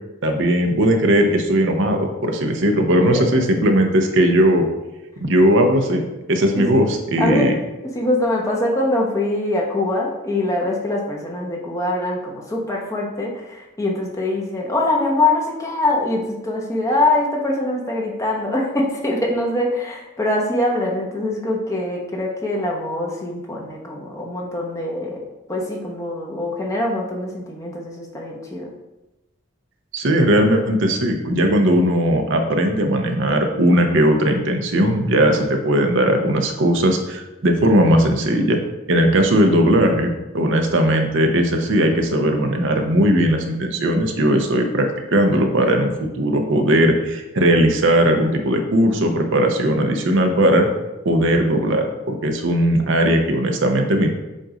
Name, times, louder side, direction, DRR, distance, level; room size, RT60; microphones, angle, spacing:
voice 1, 0.2-4.7 5.2-6.0 6.3-7.6 29.9-38.6 38.9-50.7 51.0-54.1, right 1 dB, 65° right, 4 dB, 0.7 m, -18 dB
voice 2, 7.2-7.6 7.8-28.7, left 2 dB, 15° left, -2 dB, 1.0 m, -23 dB
7.5 x 2.6 x 5.0 m, 1.0 s
head